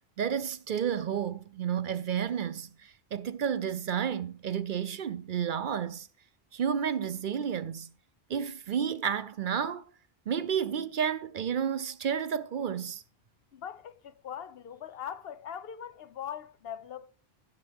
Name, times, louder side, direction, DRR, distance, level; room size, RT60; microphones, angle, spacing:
voice 1, 0.2-6.1 6.5-7.9 8.3-9.8 10.3-13.0, right 8 dB, 60° right, 0.7 m, -31 dB
voice 2, 13.5-17.1, left 9 dB, 75° left, 0.9 m, -41 dB
15.0 x 6.8 x 3.5 m
omnidirectional pair, 1.0 m